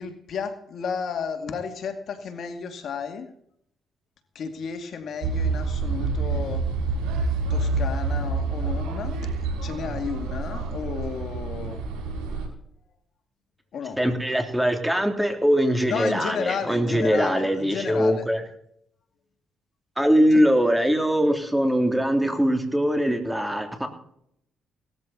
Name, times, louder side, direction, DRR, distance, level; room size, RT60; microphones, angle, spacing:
voice 1, 0.0-3.3 4.3-6.6 7.5-9.3 9.6-11.8 13.7-14.0 15.9-18.3 20.3-20.4, left 6 dB, 60° left, 6 dB, 2.3 m, -32 dB
sound 1, 5.2-12.5, right 3 dB, 90° right, 4.9 m, -27 dB
voice 2, 14.0-18.4 20.0-23.9, equal, 5° right, 5 dB, 3.0 m, -22 dB
18.5 x 13.5 x 4.1 m, 0.69 s
cardioid pair, 90°, 0 cm